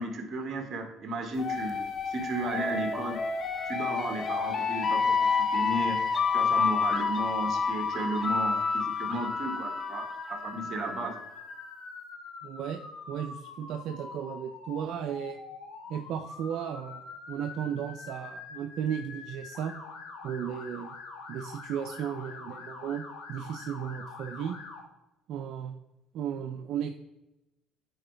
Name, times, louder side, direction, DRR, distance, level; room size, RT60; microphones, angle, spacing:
voice 1, 0.0-3.2 3.7-6.0 6.3-11.2, right 2 dB, 40° right, 4 dB, 1.5 m, -34 dB
sound 1, 1.4-11.1, left 5 dB, 40° left, 0.8 m, -29 dB
Motor vehicle (road) / Siren, 7.5-24.8, left 4 dB, 85° left, 1.7 m, -45 dB
voice 2, 12.4-12.8 13.1-15.4 15.9-19.7 20.2-21.0 21.3-24.6 25.3-25.7 26.1-26.9, right 8 dB, 65° right, 6 dB, 0.5 m, -35 dB
9.0 x 4.5 x 3.4 m, 0.95 s
cardioid pair, 105°, 0 cm